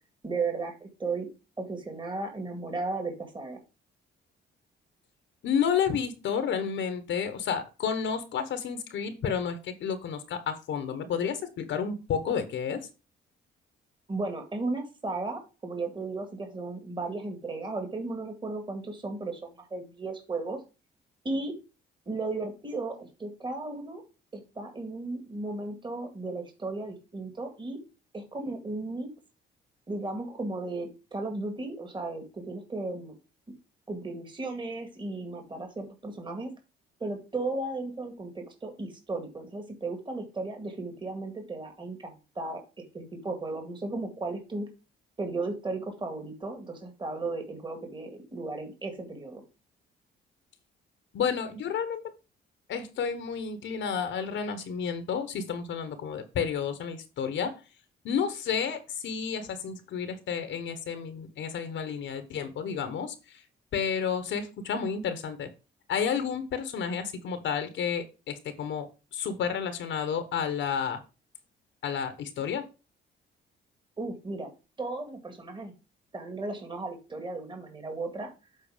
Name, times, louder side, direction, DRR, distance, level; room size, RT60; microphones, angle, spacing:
voice 1, 0.2-1.3 1.6-3.6 14.1-20.6 21.2-21.5 22.1-24.0 24.3-27.8 28.1-29.1 29.9-33.2 33.9-36.5 37.0-42.6 42.9-44.7 45.2-49.4 74.0-74.5 74.8-75.7 76.1-78.3, right 3 dB, 25° right, 4 dB, 2.0 m, -35 dB
voice 2, 5.4-12.8 51.1-52.0 52.7-57.5 58.0-63.4 63.7-65.5 65.9-71.0 71.8-72.6, left 7 dB, 70° left, 10 dB, 1.2 m, -31 dB
7.8 x 4.1 x 5.0 m, 0.30 s
cardioid pair, 90°, 20 cm